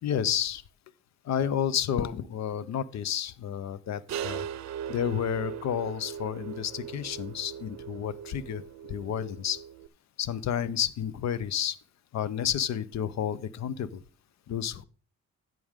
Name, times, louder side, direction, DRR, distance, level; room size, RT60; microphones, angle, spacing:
voice 1, 0.0-0.6 1.2-4.5 4.9-8.6 8.9-9.6 10.2-11.8 12.1-14.0 14.5-14.8, left 9 dB, 65° left, 18 dB, 0.8 m, -30 dB
sound 1, 4.1-9.9, right 9 dB, 60° right, 0.6 m, -39 dB
11.0 x 7.7 x 3.7 m, 0.40 s
cardioid pair, 90°, 30 cm